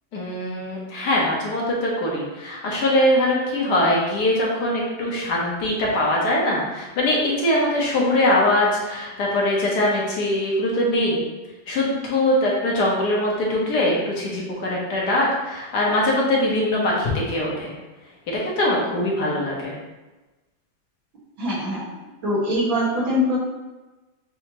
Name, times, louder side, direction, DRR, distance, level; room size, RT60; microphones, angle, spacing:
voice 1, 0.1-11.2 11.7-17.7 18.3-19.8, left 1 dB, 60° left, -3 dB, 1.4 m, -22 dB
voice 2, 21.4-21.8 22.2-23.4, left 1 dB, 90° right, -7 dB, 2.3 m, -22 dB
5.5 x 2.8 x 2.9 m, 1.1 s
omnidirectional pair, 2.1 m